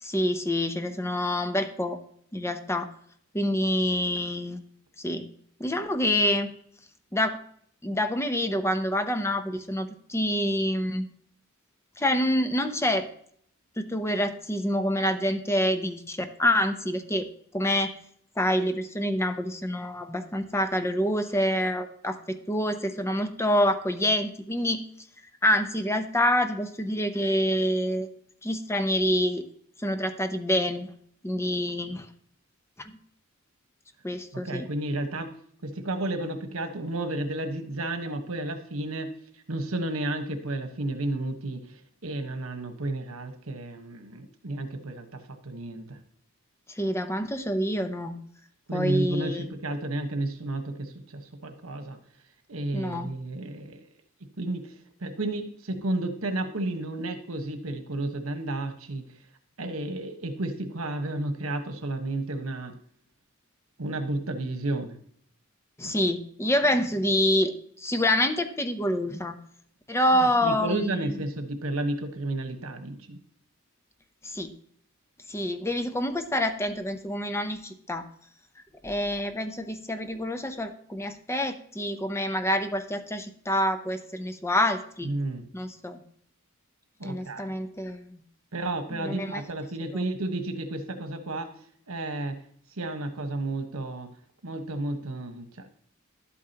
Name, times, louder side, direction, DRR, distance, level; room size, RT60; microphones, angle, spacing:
voice 1, 0.0-2.0 2.3-2.9 3.3-4.6 5.0-5.3 5.6-6.6 7.1-7.4 7.8-11.0 12.0-13.1 13.8-17.3 17.5-17.9 18.4-24.8 25.4-28.1 28.4-29.4 29.8-30.9 31.2-32.1 32.8-33.0 34.0-34.7 46.8-48.2 48.7-49.5 52.7-53.1 65.8-69.4 69.9-71.2 74.2-74.5 75.3-78.1 78.8-85.1 85.5-86.0 87.0-88.2 88.9-89.4 89.9-90.0, left 1 dB, 15° left, 8 dB, 0.7 m, -27 dB
voice 2, 34.3-35.3 35.6-39.1 39.5-46.0 48.7-52.0 52.5-53.8 54.4-54.7 55.0-59.0 59.6-62.7 63.8-65.0 70.4-73.2 85.0-85.4 87.0-87.6 88.5-91.5 91.9-92.4 92.8-94.1 94.4-95.7, right 2 dB, 80° right, 7 dB, 1.3 m, -32 dB
11.5 x 8.5 x 2.9 m, 0.63 s
head